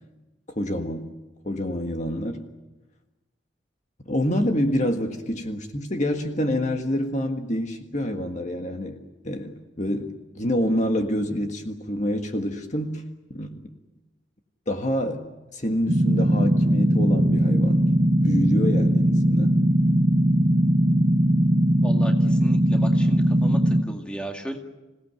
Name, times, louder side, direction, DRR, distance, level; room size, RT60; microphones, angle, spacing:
voice 1, 0.5-1.1 1.4-2.4 4.0-9.0 9.2-13.0 13.3-13.5 14.7-15.2 15.5-17.8 18.2-19.6, equal, 40° left, 4 dB, 1.7 m, -27 dB
sound 1, 15.9-23.8, right 1 dB, 45° right, 1.1 m, -20 dB
voice 2, 21.8-24.6, equal, 5° left, 3 dB, 2.1 m, -35 dB
27.0 x 17.5 x 9.4 m, 1.1 s
head